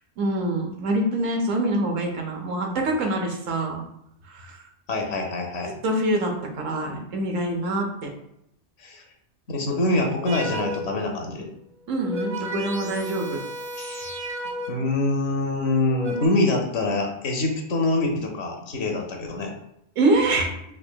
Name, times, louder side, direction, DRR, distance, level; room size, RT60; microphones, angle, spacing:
voice 1, 0.2-3.8 4.3-4.6 5.8-8.1 11.9-13.4 20.0-20.5, right 1 dB, 85° right, 2 dB, 1.1 m, -25 dB
voice 2, 4.9-5.8 8.8-9.0 9.5-11.5 13.7-14.2 14.7-19.5, left 2 dB, 65° left, 2 dB, 0.9 m, -25 dB
sound 1, 10.3-11.1 11.8-15.0 15.7-16.3, equal, 55° right, 0.9 m, -34 dB
5.0 x 2.6 x 2.2 m, 0.79 s
omnidirectional pair, 1.3 m